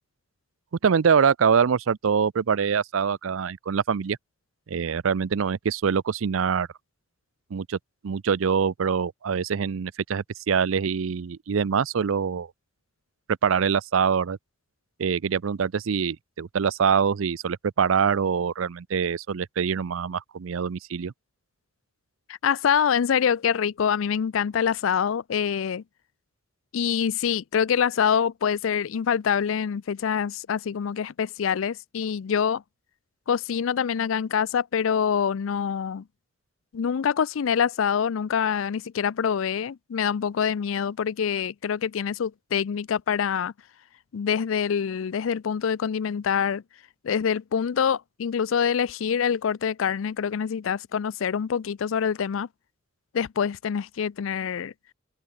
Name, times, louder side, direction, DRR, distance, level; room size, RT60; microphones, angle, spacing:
voice 1, 0.8-4.2 4.7-6.7 7.5-7.8 8.0-12.5 13.3-14.4 15.0-21.1, right 6 dB, 90° right, 0.5 m, -24 dB
voice 2, 22.4-25.8 26.7-32.6 33.3-36.0 36.7-43.5 44.1-46.6 47.0-52.5 53.1-54.7, left 7 dB, 85° left, 0.4 m, -25 dB
open air
head